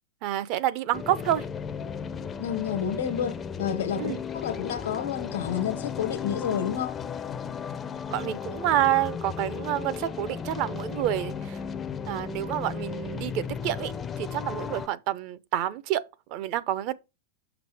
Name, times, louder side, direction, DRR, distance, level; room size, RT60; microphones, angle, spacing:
voice 1, 0.2-1.4 4.0-4.2 8.1-11.6 12.1-16.0 16.3-16.9, right 13 dB, 40° right, 0.5 m, -28 dB
sound 1, 0.9-14.9, left 6 dB, 15° left, 0.4 m, -35 dB
voice 2, 2.4-4.1 4.4-7.0, left 8 dB, 90° left, 1.2 m, -30 dB
6.2 x 5.9 x 3.4 m
supercardioid pair, 150°, 0 cm